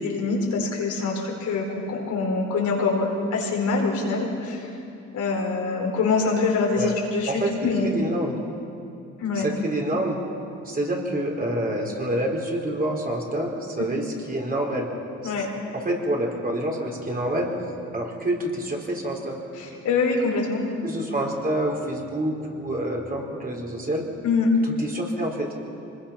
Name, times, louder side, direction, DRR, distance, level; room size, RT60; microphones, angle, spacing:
voice 1, 0.0-4.7 5.1-7.9 9.2-9.4 15.2-15.5 19.5-20.6 24.2-24.5, left 4 dB, 75° left, -1 dB, 4.7 m, -25 dB
voice 2, 7.8-8.4 9.3-10.2 10.7-14.9 15.2-15.3 15.7-17.5 17.9-19.4 20.8-24.0 24.8-25.5, right 1 dB, 30° right, -1 dB, 4.3 m, -27 dB
24.5 x 21.0 x 5.9 m, 2.6 s
cardioid pair, 90°, 30 cm